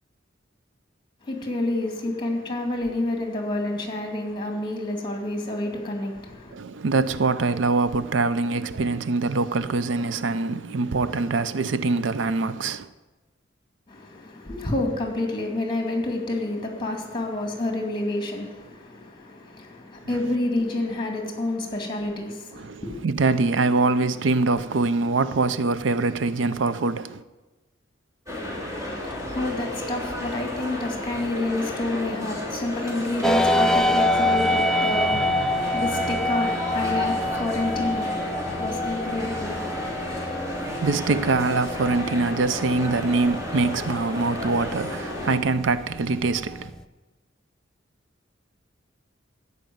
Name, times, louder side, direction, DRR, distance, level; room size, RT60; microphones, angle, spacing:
voice 1, 1.2-6.6 13.9-23.0 28.9-40.0, left 2 dB, 25° left, 2.3 m, -29 dB
voice 2, 6.5-12.9 22.5-27.2 40.5-46.7, right 3 dB, 75° right, 0.5 m, -24 dB
sound 1, 28.3-45.4, left 1 dB, 20° right, 2.8 m, -33 dB
sound 2, 33.2-46.8, left 1 dB, 5° left, 0.4 m, -27 dB
14.0 x 5.3 x 9.3 m
head